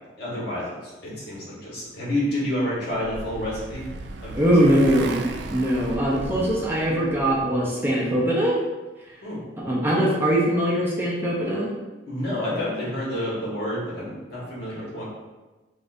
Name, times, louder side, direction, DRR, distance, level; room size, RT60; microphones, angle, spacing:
voice 1, 0.2-3.8 4.2-4.8 9.2-9.4 12.1-15.1, left 1 dB, 60° left, -7 dB, 1.5 m, -29 dB
Motorcycle, 2.5-7.5, right 3 dB, 70° right, 0.3 m, -36 dB
voice 2, 4.3-5.1 5.5-8.6 9.0-9.1 9.6-11.7, right 1 dB, 10° right, -5 dB, 0.6 m, -21 dB
5.3 x 2.5 x 2.6 m, 1.2 s
head